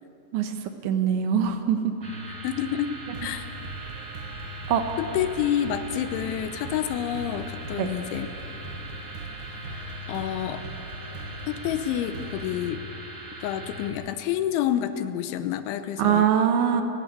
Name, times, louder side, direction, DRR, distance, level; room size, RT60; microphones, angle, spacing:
voice 1, 0.8-1.9 4.7-4.9 7.8-7.9 16.0-16.8, right 8 dB, 80° right, 6 dB, 3.5 m, -22 dB
sound 1, 2.0-13.9, equal, 25° right, 2.1 m, -39 dB
voice 2, 2.3-3.5 5.0-8.3 9.5-10.7 11.5-12.8 13.4-16.2, left 10 dB, 90° left, 10 dB, 3.3 m, -29 dB
sound 2, 3.1-12.5, right 4 dB, 55° right, 2.5 m, -41 dB
29.5 x 12.5 x 8.2 m, 3.0 s
omnidirectional pair, 5.4 m